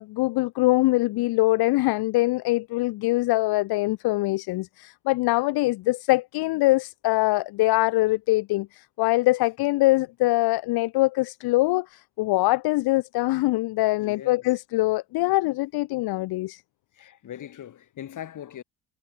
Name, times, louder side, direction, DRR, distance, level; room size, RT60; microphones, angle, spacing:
voice 1, 0.0-16.6, left 19 dB, 75° left, 0.7 m, -23 dB
voice 2, 14.0-14.5 15.2-15.4 16.9-18.6, left 10 dB, 50° left, 3.6 m, -40 dB
cardioid pair, 130°, 39 cm